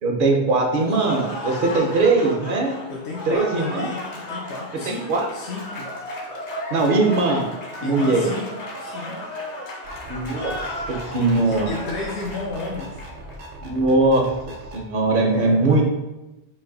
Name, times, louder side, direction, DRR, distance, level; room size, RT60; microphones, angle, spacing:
voice 1, 0.0-2.7 3.3-3.9 4.9-5.2 6.7-7.5 7.8-8.3 10.1-10.5 11.1-11.7 13.6-14.2 14.7-15.8, right 3 dB, 55° right, 1 dB, 0.7 m, -20 dB
Cheering / Applause, 0.8-13.4, left 1 dB, 50° left, 0.6 m, -34 dB
voice 2, 2.9-6.0 7.8-9.3 11.5-13.0 15.1-15.8, left 3 dB, 75° left, -2 dB, 0.8 m, -33 dB
sound 1, 9.8-14.8, right 1 dB, 85° right, 1.0 m, -39 dB
3.2 x 2.5 x 3.7 m, 1.0 s
omnidirectional pair, 1.1 m